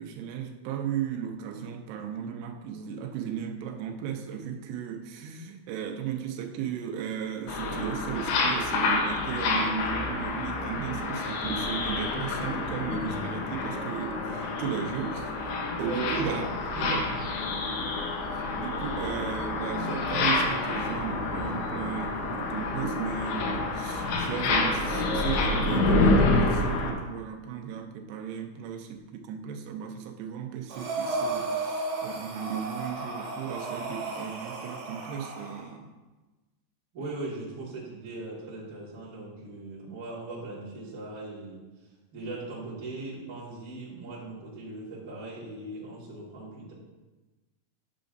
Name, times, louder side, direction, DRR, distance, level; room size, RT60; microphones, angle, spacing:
voice 1, 0.0-15.3 15.8-16.4 16.8-17.1 18.6-35.9, right 8 dB, 90° right, 3 dB, 2.8 m, -35 dB
sound 1, 7.5-26.9, left 3 dB, 75° left, 2.8 m, -28 dB
voice 2, 15.7-16.5 16.8-17.1 36.9-46.7, right 2 dB, 35° right, -7 dB, 1.5 m, -39 dB
Breathing, 30.7-35.6, right 3 dB, 65° right, 2.3 m, -34 dB
9.2 x 6.7 x 2.6 m, 1.2 s
omnidirectional pair, 4.7 m